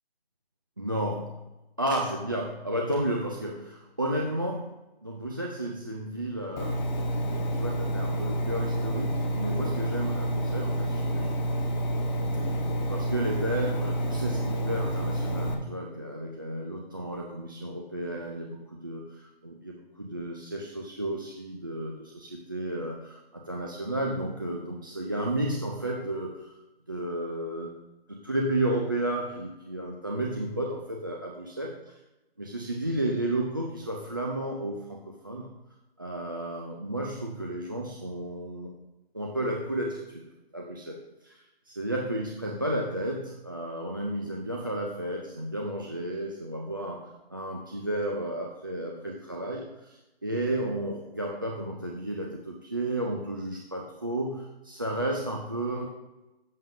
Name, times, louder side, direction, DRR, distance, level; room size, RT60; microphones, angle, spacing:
voice 1, 0.8-1.4 1.8-6.9 7.5-11.4 12.9-26.5 26.9-27.8 28.1-31.7 32.4-35.5 36.0-38.7 39.1-40.2 40.5-47.0 47.3-55.8, right 1 dB, 20° right, -1 dB, 0.3 m, -32 dB
Engine, 6.6-15.5, right 1 dB, 45° left, 1.1 m, -29 dB
10.5 x 7.4 x 2.5 m, 1.0 s
hypercardioid pair, 155°, 31 cm